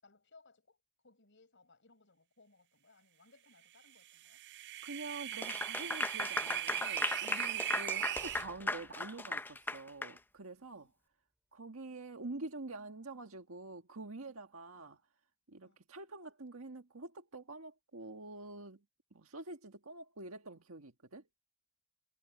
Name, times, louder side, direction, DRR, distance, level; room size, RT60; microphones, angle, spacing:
voice 1, 0.0-4.4 10.7-10.9 14.7-15.0 15.6-15.8, left 3 dB, 60° left, 6.9 m, -65 dB
sound 1, 4.1-8.4, right 13 dB, 55° right, 0.4 m, -39 dB
voice 2, 4.8-10.9 11.5-15.0 15.5-18.8 19.1-21.2, right 2 dB, 90° right, 1.7 m, -47 dB
Clapping / Applause, 5.3-10.2, left 2 dB, 10° left, 0.6 m, -37 dB
sound 2, 8.0-11.8, equal, 5° right, 2.7 m, -64 dB
head